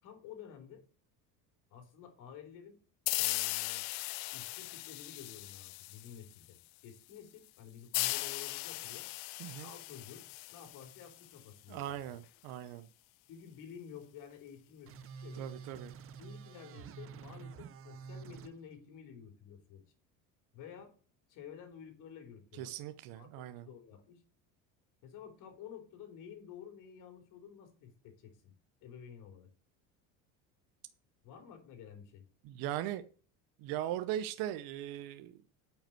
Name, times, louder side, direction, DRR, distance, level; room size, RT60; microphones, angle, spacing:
voice 1, 0.0-0.8 1.7-2.8 3.2-3.9 4.3-6.6 6.8-9.1 9.6-10.2 10.5-12.0 13.3-15.5 16.2-19.8 20.5-20.9 21.3-22.7 23.1-23.3 23.6-24.2 25.0-28.5 28.8-29.5 31.2-32.3, left 8 dB, 55° left, 3.2 m, -51 dB
sound 1, 3.1-6.5 7.9-11.4, left 24 dB, 75° left, 0.5 m, -38 dB
voice 2, 11.7-12.9 15.4-15.9 22.6-23.7 32.4-33.0 33.6-35.3, right 12 dB, 65° right, 0.8 m, -39 dB
sound 2, 14.9-18.5, right 6 dB, 35° right, 0.7 m, -48 dB
8.8 x 5.7 x 7.6 m
cardioid pair, 135°, 37 cm